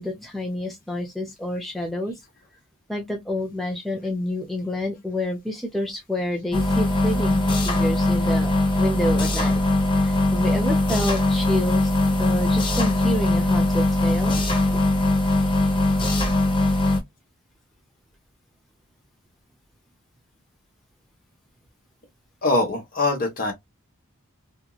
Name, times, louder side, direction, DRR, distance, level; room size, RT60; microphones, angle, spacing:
voice 1, 0.0-2.2 2.9-8.5 8.8-9.6 10.0-11.9 12.2-14.4 14.7-14.8, left 1 dB, ahead, 0.5 m, -28 dB
sound 1, 6.5-17.0, left 2 dB, 20° left, 0.9 m, -21 dB
voice 2, 22.4-23.5, left 2 dB, 40° left, 1.2 m, -23 dB
2.9 x 2.6 x 2.4 m
head